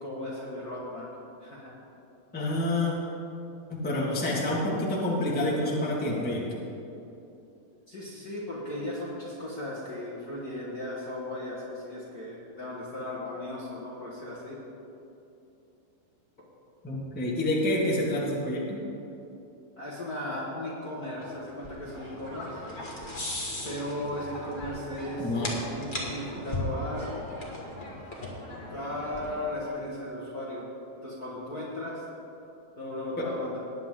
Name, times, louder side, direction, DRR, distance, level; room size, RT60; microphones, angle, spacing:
voice 1, 0.0-1.1 1.4-1.8 7.9-14.6 19.8-22.6 23.6-27.1 28.7-30.7 31.0-32.0 32.8-33.6, left 1 dB, 45° left, -6 dB, 1.3 m, -36 dB
voice 2, 2.3-2.9 3.7-6.4 16.8-18.8 25.2-25.5 33.2-33.3, left 1 dB, 5° left, -4 dB, 0.7 m, -28 dB
sound 1, 21.2-29.7, left 1 dB, 25° left, 1.2 m, -38 dB
19.5 x 9.6 x 3.8 m, 2.9 s
omnidirectional pair, 3.9 m